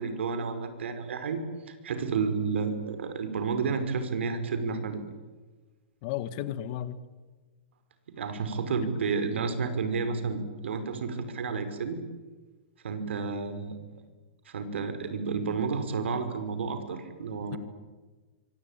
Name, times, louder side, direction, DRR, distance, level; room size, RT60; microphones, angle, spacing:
voice 1, 0.0-5.0 8.1-12.0 12.8-13.8 14.5-17.6, right 5 dB, 85° right, 9 dB, 5.3 m, -31 dB
voice 2, 6.0-7.0 17.5-17.6, left 12 dB, 35° left, 14 dB, 1.7 m, -33 dB
25.5 x 24.0 x 9.1 m, 1.3 s
hypercardioid pair, 165°, 6 cm